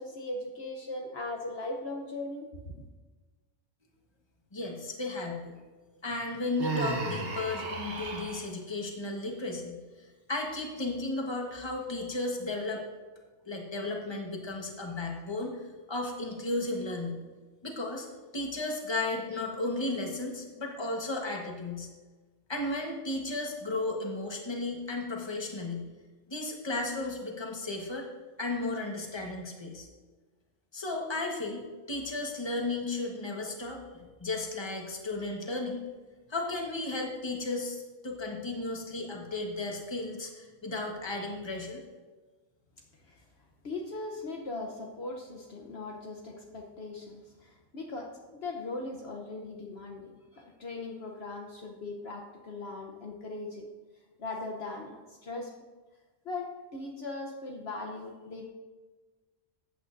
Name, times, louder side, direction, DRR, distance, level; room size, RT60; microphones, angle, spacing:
voice 1, 0.0-2.7 43.6-53.7 54.2-55.5 56.2-58.5, left 2 dB, 60° left, 0 dB, 1.2 m, -39 dB
voice 2, 4.5-5.6 6.0-12.8 13.5-17.2 17.6-18.1 18.3-21.9 22.5-25.8 26.3-28.1 28.4-29.9 30.7-31.6 31.9-35.8 36.3-41.8, left 2 dB, 20° left, 1 dB, 1.3 m, -34 dB
Human voice, 6.6-8.5, right 3 dB, 50° right, 1.3 m, -34 dB
14.5 x 8.8 x 2.6 m, 1.3 s
omnidirectional pair, 1.3 m